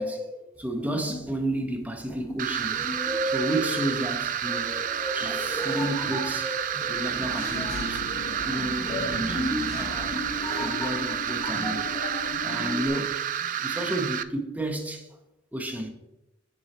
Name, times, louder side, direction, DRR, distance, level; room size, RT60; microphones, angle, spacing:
voice 1, 0.0-8.1 8.4-10.3 10.6-11.9 12.2-15.1 15.5-15.9, right 1 dB, 10° right, 0.9 m, -32 dB
sound 1, 0.5-13.1, equal, 15° left, 2.3 m, -37 dB
sound 2, 2.4-14.2, right 9 dB, 40° right, 0.3 m, -30 dB
Engine / Mechanisms, 6.9-12.9, left 3 dB, 55° left, 0.5 m, -37 dB
8.0 x 4.7 x 4.3 m
head